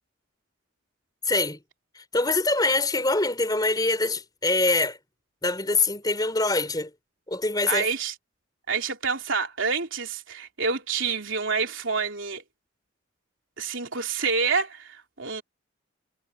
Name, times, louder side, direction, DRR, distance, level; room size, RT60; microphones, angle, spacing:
voice 1, 1.3-1.6 1.9-5.0 5.4-6.9 7.3-7.9, left 2 dB, 20° left, 4.0 m, -24 dB
voice 2, 7.7-8.1 8.7-12.4 13.6-15.4, right 5 dB, 70° right, 3.4 m, -28 dB
head